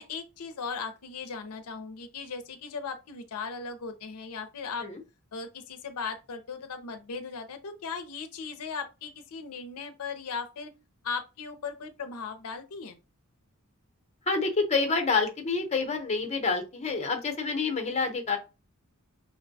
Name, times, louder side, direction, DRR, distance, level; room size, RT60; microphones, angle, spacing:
voice 1, 0.0-4.9 5.3-10.7 11.0-13.0, left 5 dB, 75° left, 0.5 m, -37 dB
voice 2, 14.3-18.4, left 4 dB, 30° left, 0.8 m, -28 dB
5.1 x 2.1 x 2.6 m
head